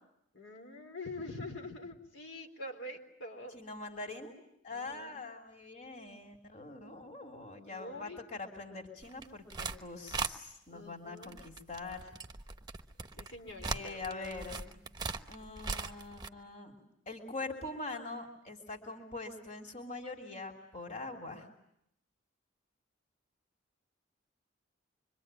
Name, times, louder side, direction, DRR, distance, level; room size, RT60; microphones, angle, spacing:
voice 1, 0.3-3.6 4.7-5.2 7.7-8.2 10.7-11.4 13.2-14.0, left 2 dB, 75° left, 3 dB, 3.9 m, -45 dB
voice 2, 3.5-4.3 4.6-12.1 13.6-14.8 15.3-16.8 17.0-21.5, left 3 dB, 40° left, 3 dB, 3.4 m, -43 dB
sound 1, 9.0-9.8 10.1-10.3 11.2-16.3, right 4 dB, 20° right, 1.1 m, -39 dB
26.5 x 24.5 x 9.1 m, 0.78 s
head